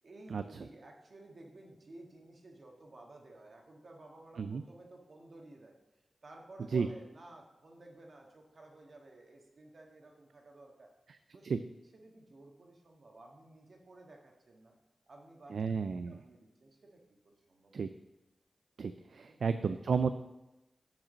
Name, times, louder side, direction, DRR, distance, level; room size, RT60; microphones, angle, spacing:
voice 1, 0.0-10.9 11.3-11.5 11.9-14.7 15.1-15.5 16.1-17.8 19.2-19.4, right 2 dB, 55° right, 0 dB, 1.7 m, -55 dB
voice 2, 15.5-16.2 17.7-17.9 18.8-20.1, right 5 dB, 80° right, 10 dB, 0.3 m, -32 dB
7.4 x 4.9 x 6.3 m, 0.96 s
wide cardioid pair, 80°, 0 cm